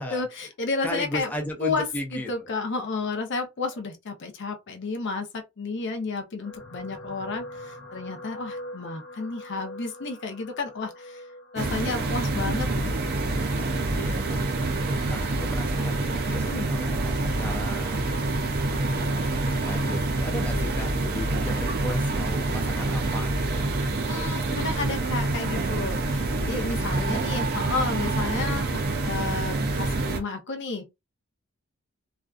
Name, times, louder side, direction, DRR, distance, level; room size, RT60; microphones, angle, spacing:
voice 1, 0.0-1.3 1.6-11.2 11.5-13.2 16.3-16.7 24.0-30.9, left 4 dB, 60° left, 0.6 m, -32 dB
voice 2, 0.8-2.3 13.8-23.6 27.0-27.3, left 1 dB, 5° left, 0.4 m, -36 dB
sound 1, 6.4-14.9 15.6-15.9 16.2-16.3, left 1 dB, 30° left, 1.3 m, -43 dB
sound 2, 11.6-30.2, right 2 dB, 50° right, 0.5 m, -27 dB
2.4 x 2.2 x 2.3 m
head